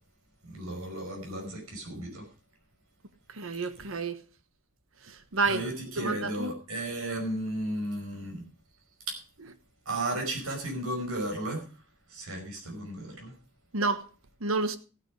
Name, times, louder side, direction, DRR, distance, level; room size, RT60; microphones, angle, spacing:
voice 1, 0.4-2.3 5.4-8.4 9.1-9.2 9.9-11.6 12.1-13.3, right 1 dB, 90° right, 5.3 m, -34 dB
voice 2, 3.3-4.2 5.1-5.7 6.0-6.5 13.7-14.1 14.4-14.8, right 3 dB, 70° right, 1.3 m, -29 dB
15.0 x 9.5 x 4.9 m
head